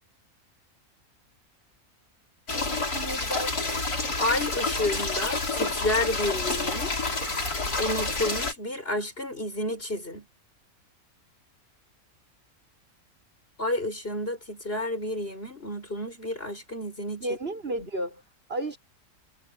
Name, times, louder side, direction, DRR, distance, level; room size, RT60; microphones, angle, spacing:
sound 1, 2.5-8.5, left 3 dB, 85° left, 5.4 m, -29 dB
voice 1, 2.7-3.9 17.2-18.2 18.5-18.8, right 1 dB, 40° right, 6.7 m, -33 dB
voice 2, 4.2-6.9 7.8-10.3 13.6-17.3, left 1 dB, 40° left, 6.5 m, -30 dB
omnidirectional pair, 1.6 m